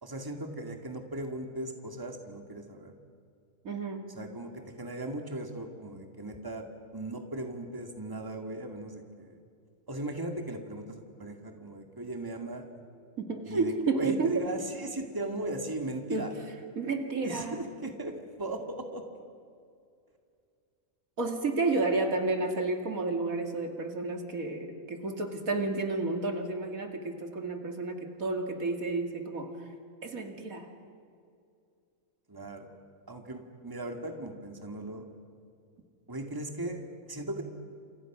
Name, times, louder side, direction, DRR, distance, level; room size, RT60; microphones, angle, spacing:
voice 1, 0.0-2.9 4.1-4.5 4.8-6.6 6.9-9.4 9.9-12.7 13.4-16.3 17.2-19.0 32.3-32.7 33.1-35.1 36.1-37.4, right 1 dB, 15° right, 4 dB, 2.3 m, -38 dB
voice 2, 3.6-4.1 13.2-14.4 16.1-16.3 16.8-17.6 21.2-29.5 30.0-30.7, right 3 dB, 75° right, 4 dB, 2.8 m, -31 dB
30.0 x 28.0 x 6.2 m, 2.4 s
omnidirectional pair, 1.5 m